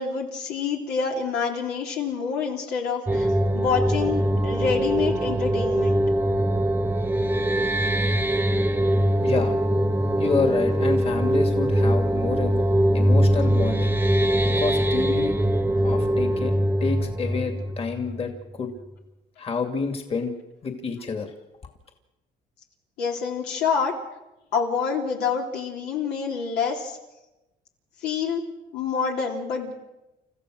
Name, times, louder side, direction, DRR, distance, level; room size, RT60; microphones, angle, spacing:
voice 1, 0.0-3.3 3.5-6.0 23.0-23.9 24.5-27.0 28.0-28.4 28.7-29.7, left 5 dB, 85° left, 1 dB, 3.6 m, -27 dB
sound 1, 3.1-18.5, right 1 dB, 10° right, 0.8 m, -22 dB
voice 2, 9.2-9.5 10.2-12.6 12.9-13.9 14.4-15.3 15.8-16.5 16.8-18.7 19.4-20.3 20.6-21.3, left 5 dB, 35° left, 5 dB, 2.5 m, -28 dB
29.5 x 14.5 x 6.4 m, 0.99 s
cardioid pair, 110°, 17 cm